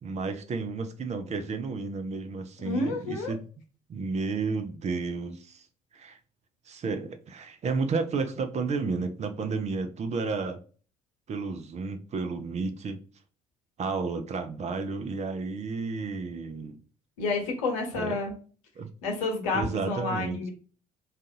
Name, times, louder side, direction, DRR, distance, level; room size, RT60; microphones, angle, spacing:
voice 1, 0.0-3.4 3.9-5.6 5.9-6.2 6.7-10.6 11.3-13.0 13.8-16.8 18.0-18.1 18.8-18.9 19.5-20.4, right 4 dB, 35° right, 0.6 m, -32 dB
voice 2, 2.6-3.3 17.2-18.3 19.0-20.5, left 3 dB, 70° left, 1.0 m, -29 dB
4.0 x 2.5 x 2.7 m
figure-of-eight pair, 50°, 19 cm